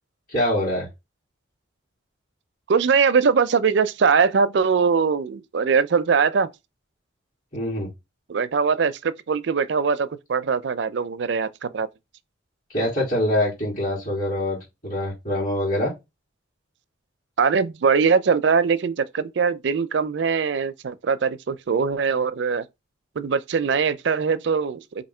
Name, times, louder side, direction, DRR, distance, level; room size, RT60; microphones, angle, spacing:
voice 1, 0.3-0.9 7.5-7.9 12.7-15.9, left 1 dB, 40° left, 2.3 m, -24 dB
voice 2, 2.7-6.5 8.3-11.9 17.4-22.7 23.2-25.0, right 5 dB, 60° right, 0.4 m, -21 dB
3.6 x 2.6 x 4.3 m
head